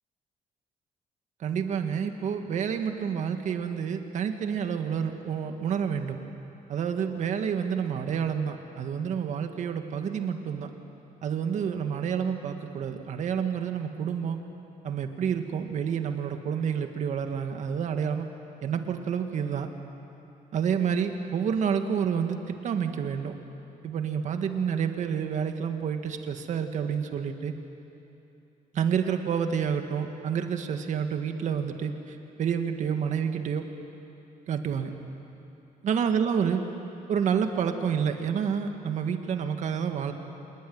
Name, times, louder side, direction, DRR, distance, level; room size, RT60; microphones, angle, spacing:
voice 1, 1.4-6.2 6.7-10.7 11.2-14.4 14.8-18.3 18.6-19.7 20.5-23.4 23.8-27.6 28.7-33.7 34.5-34.9 35.8-36.6 37.1-40.1, right 7 dB, 55° right, 6 dB, 1.8 m, -29 dB
27.0 x 20.5 x 9.6 m, 3.0 s
cardioid pair, 170°, 15 cm